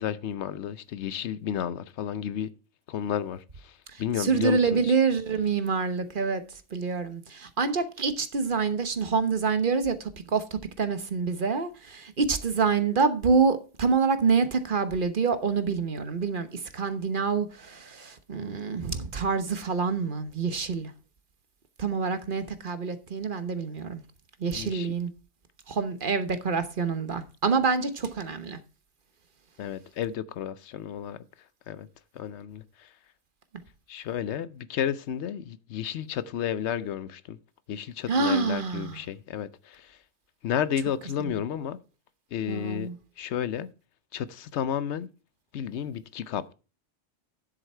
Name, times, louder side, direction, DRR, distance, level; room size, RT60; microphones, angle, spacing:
voice 1, 0.0-2.5 2.9-4.9 24.5-25.0 29.6-31.2 31.7-31.9 32.1-32.9 33.9-37.4 37.7-40.0 40.4-41.8 42.3-43.7 44.1-45.1 45.5-46.5, left 9 dB, 85° left, 1.0 m, -32 dB
voice 2, 3.9-6.4 6.7-20.9 21.8-24.0 24.4-25.1 25.7-28.6 38.1-39.0 41.2-41.3 42.5-42.9, right 5 dB, 50° right, 1.2 m, -27 dB
9.8 x 7.9 x 4.4 m
omnidirectional pair, 1.1 m